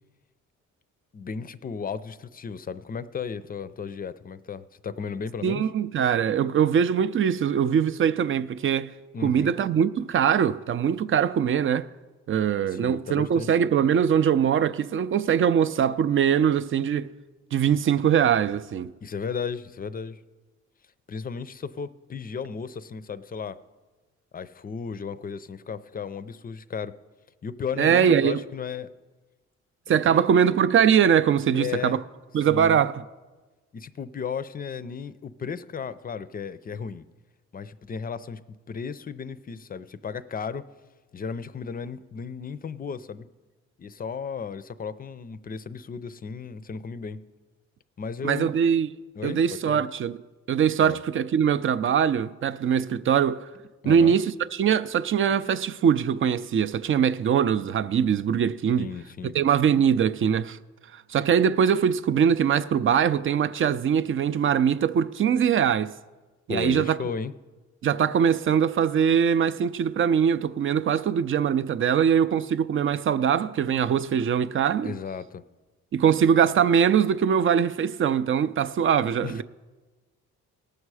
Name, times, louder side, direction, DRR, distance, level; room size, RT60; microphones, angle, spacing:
voice 1, 1.1-5.7 9.1-9.6 12.7-13.5 19.0-20.2 21.1-23.6 24.3-26.9 27.4-28.9 29.9-30.2 31.5-32.0 32.5-32.8 33.7-37.0 37.5-38.4 38.7-40.7 41.1-43.3 43.8-47.2 48.0-48.5 49.2-49.4 49.7-49.8 50.8-51.0 53.8-54.2 58.8-59.4 66.5-67.3 74.8-75.4 79.2-79.4, left 6 dB, 30° left, 0.5 m, -34 dB
voice 2, 5.4-8.9 9.2-11.9 12.3-17.1 17.5-18.9 27.8-28.4 29.9-32.0 32.3-33.0 48.2-48.9 49.2-50.2 50.5-53.4 53.8-58.9 59.3-60.6 61.1-65.9 66.5-67.0 67.8-74.9 75.9-79.4, right 8 dB, 45° right, 0.5 m, -22 dB
18.0 x 6.5 x 4.8 m
cardioid pair, 90°, 30 cm